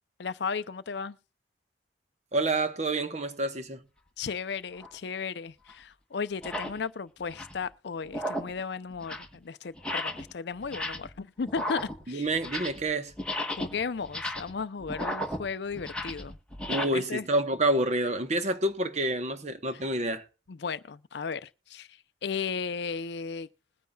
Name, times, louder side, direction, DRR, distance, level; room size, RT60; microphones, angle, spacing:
voice 1, 0.2-1.2 4.2-12.3 13.6-16.4 16.8-17.2 20.5-23.5, left 5 dB, 65° left, 0.5 m, -35 dB
voice 2, 2.3-3.8 12.1-13.1 16.7-20.2, right 2 dB, 35° right, 1.0 m, -28 dB
sound 1, 4.8-5.0 5.7-5.8 6.3-6.8 7.2-7.6 8.0-8.6 8.9-9.4 9.8-10.3 10.6-11.2 11.5-12.9 13.1-16.8, left 1 dB, 5° left, 1.1 m, -35 dB
21.0 x 9.4 x 2.3 m
head